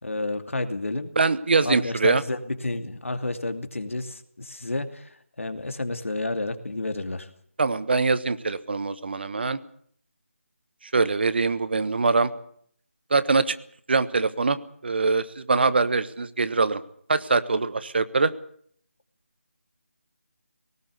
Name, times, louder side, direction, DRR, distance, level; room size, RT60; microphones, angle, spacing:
voice 1, 0.0-1.1 1.6-7.3, left 2 dB, 75° left, 8 dB, 2.5 m, -30 dB
voice 2, 1.2-2.2 7.6-9.6 10.9-12.3 13.1-13.5 13.9-14.6 14.8-16.8 17.1-18.3, right 4 dB, 50° right, 14 dB, 1.3 m, -23 dB
19.0 x 17.5 x 8.4 m, 0.62 s
figure-of-eight pair, 165°, 7 cm